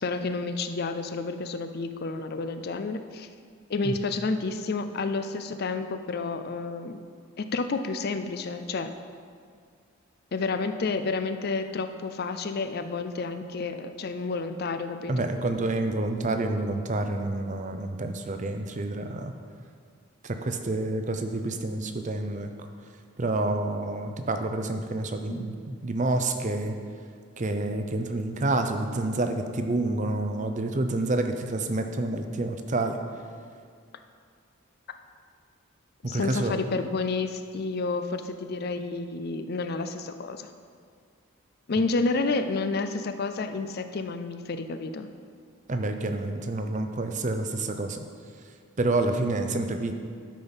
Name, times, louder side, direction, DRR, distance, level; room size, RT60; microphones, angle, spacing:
voice 1, 0.0-3.3 3.7-7.0 7.4-8.9 10.3-15.3 25.3-25.5 36.1-40.5 41.7-45.1, left 3 dB, 45° left, 9 dB, 0.4 m, -30 dB
voice 2, 15.1-19.3 20.2-22.7 23.2-26.8 27.4-33.0 36.0-36.5 45.7-48.0 48.8-49.9, right 2 dB, 35° right, 6 dB, 0.6 m, -28 dB
12.0 x 5.3 x 5.5 m, 2.1 s
head